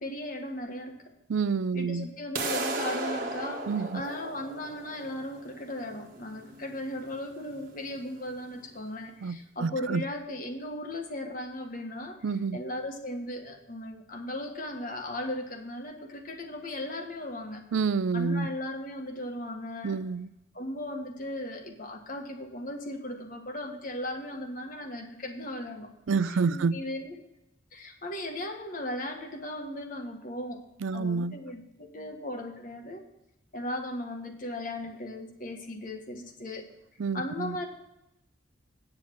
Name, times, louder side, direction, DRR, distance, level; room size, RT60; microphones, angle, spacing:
voice 1, 0.0-1.1 1.7-3.7 3.9-12.2 12.5-17.6 18.1-20.0 20.5-25.9 26.3-27.2 27.7-30.6 30.9-33.0 33.5-36.7 37.1-37.7, left 1 dB, 45° left, 1.5 m, -37 dB
voice 2, 1.3-2.1 3.7-4.0 9.2-10.0 12.2-12.6 17.7-18.5 19.8-20.3 26.1-26.8 30.8-31.3 37.0-37.6, right 5 dB, 80° right, 0.4 m, -28 dB
sound 1, 2.4-8.3, right 2 dB, 45° right, 1.4 m, -36 dB
9.7 x 7.4 x 6.0 m
head